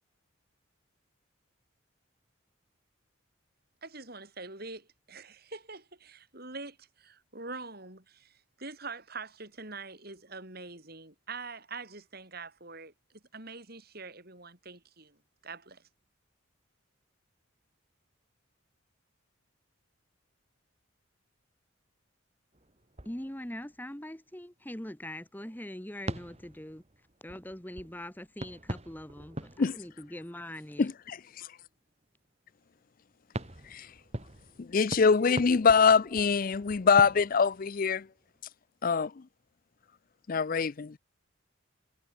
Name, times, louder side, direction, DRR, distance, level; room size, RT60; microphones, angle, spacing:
voice 1, 3.8-15.2 15.4-15.8, right 3 dB, 45° right, 6.8 m, -44 dB
sound 1, 22.5-23.8 24.4-24.5 25.1-25.2 26.1-30.8 33.3-38.4, right 1 dB, 30° right, 2.4 m, -43 dB
voice 2, 23.0-26.8 27.2-30.9, left 1 dB, 10° left, 1.2 m, -42 dB
voice 3, 30.8-31.5 33.7-33.9 34.6-38.1 38.8-39.2 40.3-41.0, left 5 dB, 40° left, 0.4 m, -24 dB
head